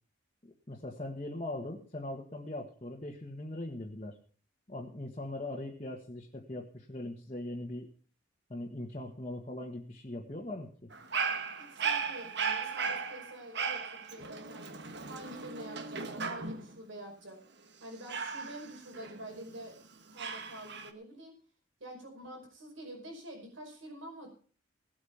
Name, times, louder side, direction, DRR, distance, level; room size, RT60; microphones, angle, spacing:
voice 1, 0.4-4.2 4.7-7.9 8.5-10.9, left 1 dB, 30° left, -1 dB, 1.6 m, -40 dB
Dog, 10.9-16.8 18.1-19.6 20.2-20.9, right 5 dB, 55° right, 1.3 m, -36 dB
voice 2, 11.6-14.8 15.1-17.4 17.8-19.8 20.1-21.3 21.8-24.3, right 1 dB, 75° right, 2 dB, 5.2 m, -47 dB
17.5 x 8.5 x 5.7 m, 0.43 s
head